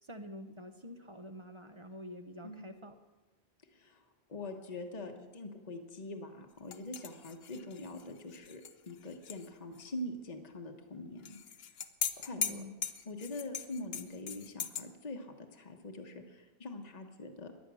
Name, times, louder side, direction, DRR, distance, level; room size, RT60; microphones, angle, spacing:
voice 1, 0.0-3.0 12.3-12.8, equal, 30° right, 7 dB, 0.9 m, -47 dB
voice 2, 3.7-4.0 4.3-11.4 12.2-12.6 13.0-17.5, left 2 dB, 40° left, 3 dB, 1.3 m, -44 dB
sound 1, 6.7-9.5 9.7-9.8 11.2-14.8, left 7 dB, 75° left, 1.0 m, -40 dB
15.0 x 11.0 x 6.2 m, 1.2 s
omnidirectional pair, 1.1 m